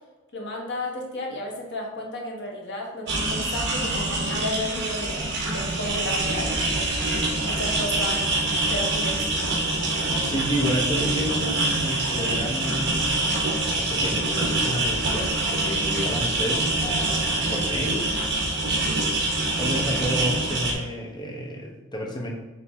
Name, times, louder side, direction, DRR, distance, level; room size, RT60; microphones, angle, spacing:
voice 1, 0.3-7.0 7.4-8.3 8.7-9.5 18.7-19.1, left 1 dB, 60° left, 0 dB, 1.4 m, -33 dB
sound 1, 3.1-20.7, right 2 dB, 55° right, 1.6 m, -25 dB
voice 2, 10.3-13.2 13.8-18.1 19.4-22.3, equal, 20° left, -1 dB, 1.2 m, -30 dB
6.9 x 3.1 x 4.8 m, 1.2 s
head